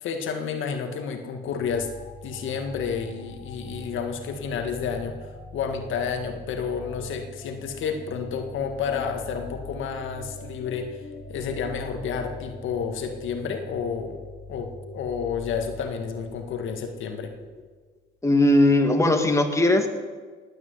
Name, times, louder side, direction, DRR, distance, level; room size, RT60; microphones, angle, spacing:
voice 1, 0.0-1.9 2.2-11.0 11.3-14.2 14.5-17.3, left 6 dB, 80° left, 5 dB, 1.8 m, -30 dB
sound 1, 1.5-17.8, left 2 dB, 50° left, 2.7 m, -42 dB
voice 2, 18.2-19.9, left 1 dB, 15° left, 4 dB, 2.1 m, -19 dB
18.5 x 9.2 x 7.9 m, 1.4 s
cardioid pair, 90°, 20 cm